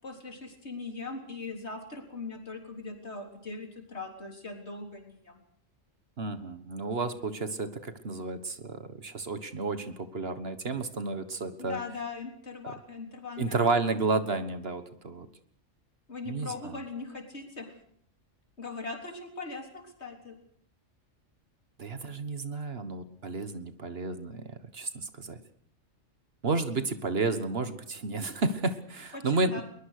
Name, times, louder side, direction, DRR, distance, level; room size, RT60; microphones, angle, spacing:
voice 1, 0.0-5.4 11.6-13.7 16.1-17.8 18.6-20.4 29.1-29.6, left 4 dB, 60° left, 3 dB, 4.0 m, -40 dB
voice 2, 6.2-11.8 13.4-15.3 16.2-16.8 21.8-25.4 26.4-29.6, right 3 dB, 55° right, 10 dB, 1.6 m, -31 dB
22.0 x 21.0 x 6.6 m, 0.66 s
omnidirectional pair, 1.3 m